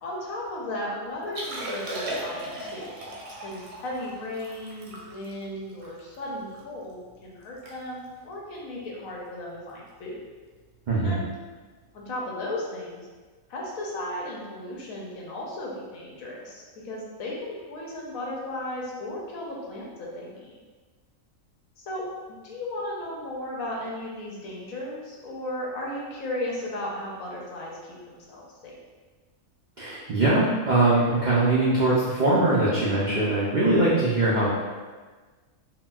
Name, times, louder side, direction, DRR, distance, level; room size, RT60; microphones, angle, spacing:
voice 1, 0.0-2.9 3.3-10.2 11.0-11.2 11.9-13.0 13.5-20.5 21.8-28.7, left 1 dB, 80° left, -3 dB, 1.1 m, -35 dB
Liquid, 1.2-6.6 7.1-7.2 7.4-7.7 8.0-8.3 8.9-9.1 10.5-10.6, right 1 dB, 60° right, 0.8 m, -37 dB
voice 2, 10.9-11.2 29.8-34.5, right 2 dB, 90° right, -7 dB, 0.4 m, -22 dB
3.7 x 2.1 x 2.3 m, 1.4 s
omnidirectional pair, 1.4 m